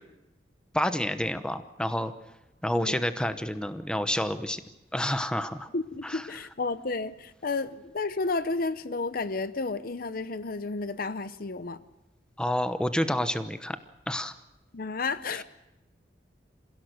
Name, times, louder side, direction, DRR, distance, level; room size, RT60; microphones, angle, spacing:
voice 1, 0.7-2.1 2.6-4.6 4.9-5.7 6.0-6.2 12.4-13.8 14.1-14.3, left 1 dB, 5° left, 10 dB, 0.9 m, -29 dB
voice 2, 2.7-3.0 5.7-11.8 14.7-15.4, left 3 dB, 55° left, 14 dB, 0.7 m, -32 dB
27.0 x 16.5 x 6.6 m, 0.94 s
head